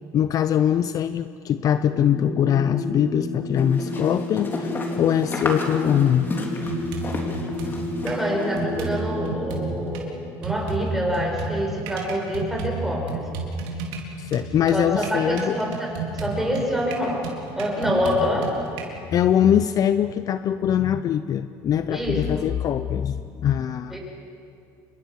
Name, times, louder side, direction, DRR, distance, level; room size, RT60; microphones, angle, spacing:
voice 1, 0.1-6.3 14.2-15.6 19.1-24.0, left 9 dB, 45° left, 12 dB, 0.7 m, -22 dB
sound 1, 1.9-9.5, left 2 dB, 80° left, 6.5 m, -31 dB
sound 2, 3.6-8.6, left 2 dB, 25° left, 3.9 m, -33 dB
sound 3, 6.7-8.2 8.6-10.0 10.4-18.8, right 3 dB, 80° right, 4.2 m, -32 dB
voice 2, 8.0-10.1 10.4-13.3 14.7-17.3 17.6-18.6 21.9-22.4 23.9-24.0, equal, 5° right, -1 dB, 7.1 m, -26 dB
28.0 x 23.0 x 6.5 m, 2.6 s
supercardioid pair, 110°, 8 cm